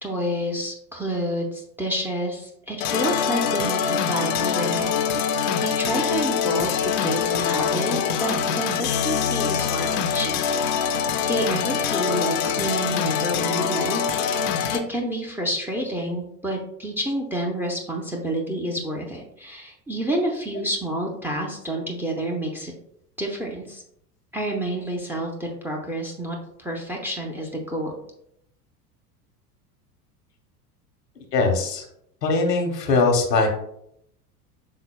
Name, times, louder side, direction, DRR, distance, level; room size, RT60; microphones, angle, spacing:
voice 1, 0.0-4.9 5.6-22.7 23.2-23.8 24.3-28.0, right 1 dB, 5° right, 1 dB, 0.5 m, -29 dB
sound 1, 2.8-14.8, left 7 dB, 45° left, 0.5 m, -24 dB
voice 2, 31.3-31.8 32.2-33.5, left 3 dB, 80° left, 3 dB, 1.0 m, -21 dB
5.5 x 3.9 x 2.2 m, 0.74 s
figure-of-eight pair, 80°, 48 cm